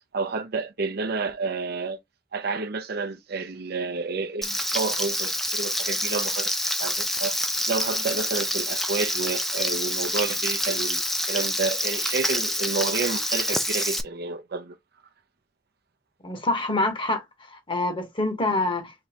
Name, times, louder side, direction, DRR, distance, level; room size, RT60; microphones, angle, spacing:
voice 1, 0.1-2.0 2.3-6.5 6.8-7.3 7.7-14.8, right 4 dB, 55° right, 0.6 m, -30 dB
Frying (food), 4.4-14.0, equal, ahead, 0.4 m, -27 dB
voice 2, 16.2-19.1, left 2 dB, 25° left, 1.0 m, -26 dB
3.7 x 3.2 x 2.8 m
head